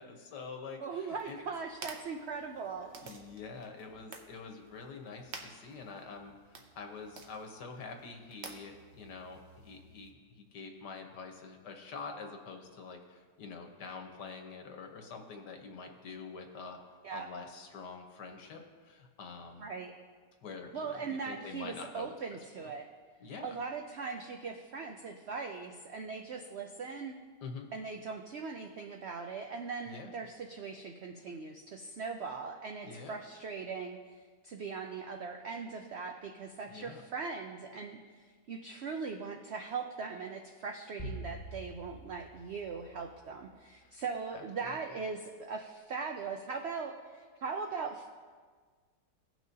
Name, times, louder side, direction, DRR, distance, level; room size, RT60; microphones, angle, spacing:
voice 1, 0.0-1.4 2.8-16.8 17.1-19.7 20.4-22.1 22.6-22.7 23.2-23.5 27.4-27.7 29.8-30.1 32.8-33.2 36.7-37.0 43.8-44.0 44.3-44.8, left 4 dB, 85° left, 3 dB, 1.6 m, -46 dB
voice 2, 0.8-2.9 17.0-17.3 19.6-19.9 20.7-22.9 23.4-27.1 27.7-34.0 34.4-48.1, right 5 dB, 85° right, 3 dB, 0.5 m, -40 dB
sound 1, 1.1-10.1, right 4 dB, 50° right, 0.9 m, -52 dB
sound 2, 41.0-43.5, right 1 dB, 25° left, 1.2 m, -45 dB
16.5 x 6.1 x 2.7 m, 1.6 s
omnidirectional pair, 1.8 m